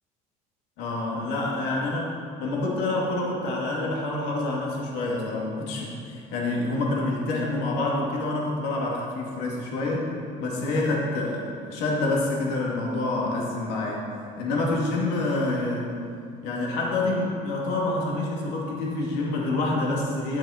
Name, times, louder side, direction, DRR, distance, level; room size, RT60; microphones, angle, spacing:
voice 1, 0.8-2.1 2.4-10.1 10.4-14.1 14.4-15.9 16.4-20.4, left 2 dB, 75° left, -3 dB, 2.4 m, -27 dB
11.5 x 7.2 x 5.0 m, 2.5 s
supercardioid pair, 105°, 17 cm